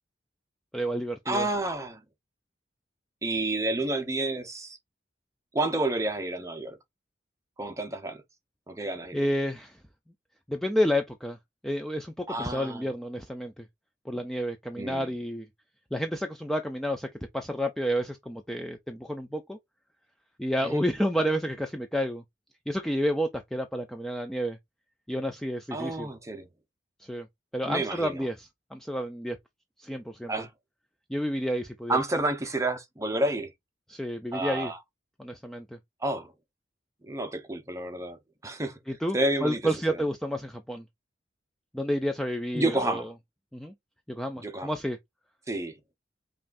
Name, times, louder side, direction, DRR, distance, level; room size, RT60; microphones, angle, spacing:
voice 1, 0.7-1.5 9.1-9.8 10.5-11.4 11.6-13.7 14.1-15.5 15.9-17.1 17.3-19.6 20.4-22.2 22.7-24.6 25.1-26.1 27.0-27.3 27.5-29.4 29.8-30.3 31.1-32.0 33.9-34.7 35.2-35.8 38.9-40.8 41.7-43.1 43.5-43.7 44.1-45.0, equal, ahead, 0.4 m, -30 dB
voice 2, 1.3-2.0 3.2-4.8 5.5-6.8 7.6-8.2 8.7-9.2 12.3-12.8 14.8-15.1 20.6-20.8 25.7-26.5 27.6-28.3 30.3-30.5 31.9-33.5 34.3-34.8 36.0-36.3 37.0-38.8 39.1-39.6 39.9-40.0 42.5-43.1 44.4-44.7 45.5-45.7, right 2 dB, 15° right, 0.8 m, -30 dB
5.4 x 2.5 x 2.5 m
head